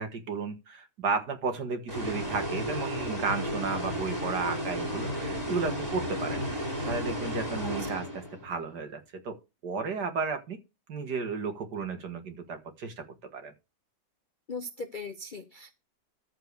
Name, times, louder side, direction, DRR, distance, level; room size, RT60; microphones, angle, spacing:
voice 1, 0.0-6.4 6.8-9.4 9.6-10.6 10.9-13.1 13.3-13.5, right 4 dB, 65° right, 7 dB, 2.2 m, -33 dB
sound 1, 1.9-8.6, equal, 20° right, 5.7 m, -33 dB
voice 2, 14.5-15.7, left 3 dB, 45° left, 7 dB, 0.7 m, -39 dB
13.5 x 4.7 x 6.6 m, 0.27 s
omnidirectional pair, 1.9 m